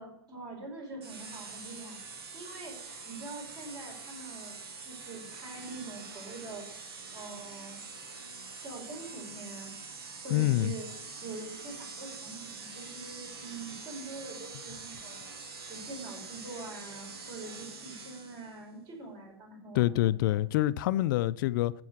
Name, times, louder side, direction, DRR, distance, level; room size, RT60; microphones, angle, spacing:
voice 1, 0.0-2.0 2.3-7.8 8.6-10.9 11.2-15.3 15.7-20.4, right 3 dB, 35° right, 4.8 m, -44 dB
sound 1, 1.0-18.6, right 4 dB, 80° right, 2.1 m, -45 dB
voice 2, 10.3-10.7 19.7-21.7, left 15 dB, 55° left, 0.4 m, -26 dB
7.5 x 7.3 x 7.8 m
hypercardioid pair, 125°, 13 cm